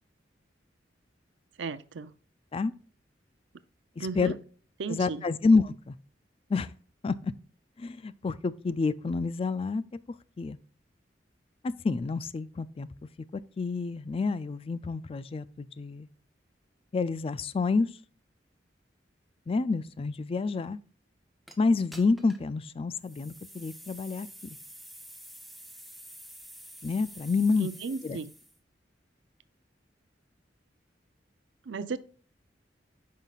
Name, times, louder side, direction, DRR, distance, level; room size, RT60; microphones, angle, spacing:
voice 1, 1.6-2.1 4.0-4.3 4.8-5.3 27.6-28.3 31.7-32.0, right 4 dB, 90° right, 0.5 m, -35 dB
voice 2, 4.0-4.3 4.9-5.9 6.5-6.7 7.0-7.3 7.8-9.8 10.4-10.6 11.6-12.9 13.3-16.1 16.9-17.9 19.5-20.8 21.6-24.3 26.8-27.7 28.0-28.2, left 4 dB, 30° left, 0.3 m, -28 dB
Dropping a smoke bomb on the ground, 21.5-21.6 21.9-22.5 23.0-28.6, equal, ahead, 0.8 m, -48 dB
9.1 x 5.6 x 2.4 m
head